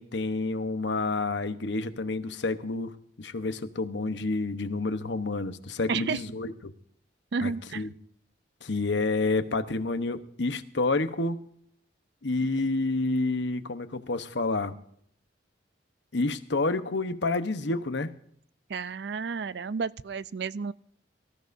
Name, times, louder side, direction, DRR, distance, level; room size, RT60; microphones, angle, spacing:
voice 1, 0.0-2.9 3.2-6.7 7.4-7.9 8.6-11.4 12.2-14.7 16.1-18.1, left 3 dB, 75° left, 1.0 m, -29 dB
voice 2, 5.9-6.2 7.3-7.8 18.7-20.7, right 5 dB, 65° right, 0.4 m, -31 dB
24.0 x 14.0 x 2.6 m
head